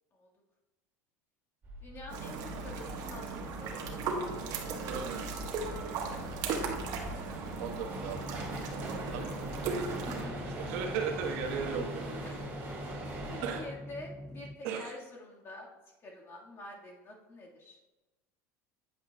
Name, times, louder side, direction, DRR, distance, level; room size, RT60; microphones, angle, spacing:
sound 1, 1.6-13.6, right 1 dB, 25° right, 2.3 m, -43 dB
voice 1, 1.8-3.7 5.8-6.3 10.0-10.6 12.3-12.4 13.3-15.7 16.0-17.8, left 2 dB, 30° left, -2 dB, 1.8 m, -47 dB
sound 2, 2.1-10.3, right 4 dB, 55° right, 1.3 m, -37 dB
voice 2, 4.9-5.3 7.6-8.2 8.7-10.3 10.6-12.0 13.4-13.6 14.6-14.9, right 6 dB, 75° right, 3 dB, 1.3 m, -37 dB
sound 3, 7.9-14.6, left 1 dB, 10° left, 0.4 m, -43 dB
9.3 x 8.1 x 2.3 m, 1.1 s
supercardioid pair, 120°, 8 cm